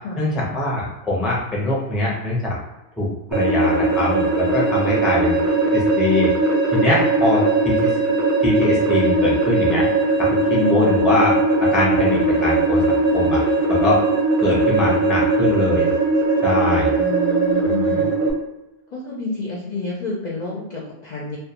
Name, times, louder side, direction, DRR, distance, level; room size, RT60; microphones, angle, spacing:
voice 1, 0.2-2.6 3.0-6.3 6.7-9.9 10.2-10.4 10.7-11.3 11.6-13.4 13.7-14.0 14.4-15.9 16.4-16.9 17.8-18.1, left 2 dB, ahead, -4 dB, 0.4 m, -22 dB
sound 1, 3.3-18.3, right 3 dB, 55° right, 0.7 m, -19 dB
voice 2, 10.5-11.2 16.9-18.1 18.9-21.4, left 3 dB, 55° left, -4 dB, 0.5 m, -29 dB
2.2 x 2.1 x 2.8 m, 0.99 s
omnidirectional pair, 1.1 m